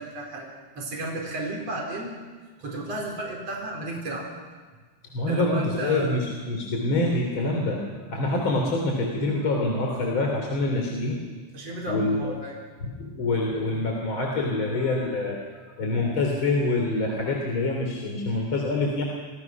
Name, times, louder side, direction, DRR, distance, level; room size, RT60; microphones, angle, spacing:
voice 1, 0.0-2.1 2.6-4.3 5.3-6.2 11.5-12.6, right 1 dB, 60° right, -1 dB, 5.3 m, -33 dB
voice 2, 5.1-11.2 11.9-12.3 12.8-15.4 15.8-19.0, left 2 dB, 45° left, 0 dB, 3.7 m, -26 dB
29.5 x 25.5 x 6.0 m, 1.4 s
omnidirectional pair, 3.3 m